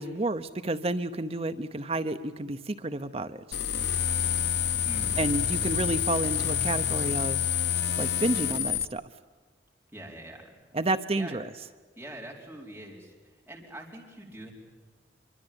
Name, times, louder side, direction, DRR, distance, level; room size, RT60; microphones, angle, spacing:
voice 1, 0.0-3.4 5.2-7.5 8.0-9.0 10.7-11.5, right 2 dB, 35° right, 10 dB, 0.8 m, -30 dB
sound 1, 3.5-8.8, left 8 dB, 70° left, 0.8 m, -28 dB
voice 2, 4.8-5.2 9.9-10.6 11.1-11.4 12.0-13.1 13.5-14.5, right 1 dB, 10° right, -2 dB, 4.6 m, -43 dB
26.0 x 23.5 x 8.8 m, 1.4 s
head